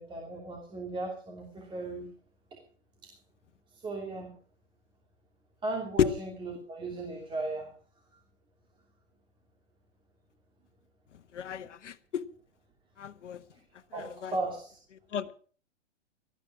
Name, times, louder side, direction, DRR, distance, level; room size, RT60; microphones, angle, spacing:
voice 1, 0.0-2.1 2.5-2.6 3.0-3.1 3.7-4.4 5.6-7.7 13.9-14.8, right 2 dB, 15° right, 0 dB, 2.8 m, -37 dB
voice 2, 11.3-12.2 13.0-13.4 14.2-14.3 15.1-15.3, left 8 dB, 75° left, 9 dB, 1.4 m, -30 dB
19.0 x 13.5 x 4.7 m, 0.43 s
hypercardioid pair, 140°, 37 cm